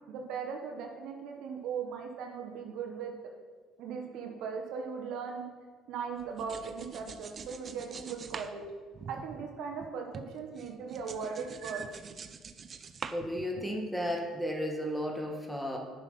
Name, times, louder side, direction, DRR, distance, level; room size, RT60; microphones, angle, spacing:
voice 1, 0.0-3.1 3.8-5.4 5.9-8.6 9.1-11.8, right 6 dB, 75° right, 2 dB, 1.3 m, -38 dB
sound 1, 6.2-9.9 10.1-13.9, right 5 dB, 40° right, 0.6 m, -45 dB
voice 2, 13.1-15.8, equal, ahead, 1 dB, 1.8 m, -33 dB
9.7 x 6.1 x 5.6 m, 1.5 s
supercardioid pair, 85°, 0 cm